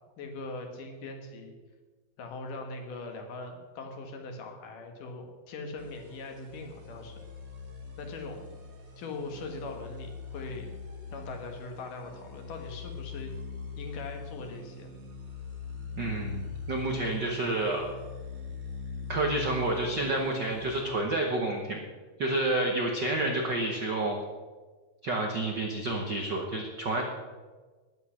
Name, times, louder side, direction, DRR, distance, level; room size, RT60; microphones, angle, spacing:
voice 1, 0.2-1.5 2.2-7.3 8.0-8.5 9.0-10.7 11.1-13.3 13.8-14.9, left 3 dB, 70° left, 3 dB, 3.0 m, -41 dB
sound 1, 5.8-20.8, left 4 dB, 40° right, 1.2 m, -42 dB
voice 2, 16.0-17.9 19.1-21.8 22.2-24.2 25.0-27.0, right 2 dB, 85° right, 1 dB, 0.9 m, -29 dB
13.5 x 10.0 x 5.8 m, 1.4 s
omnidirectional pair, 4.1 m